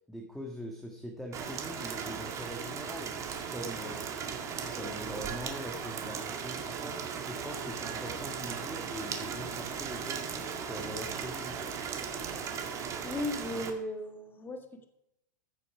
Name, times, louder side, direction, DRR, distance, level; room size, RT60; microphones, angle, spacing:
voice 1, 0.1-3.2 3.5-11.7, equal, ahead, 2 dB, 1.6 m, -43 dB
Rain, 1.3-13.7, right 6 dB, 30° right, 1.9 m, -37 dB
voice 2, 13.0-14.9, left 1 dB, 20° left, 7 dB, 1.6 m, -36 dB
14.5 x 6.9 x 4.8 m, 0.85 s
hypercardioid pair, 115°, 10 cm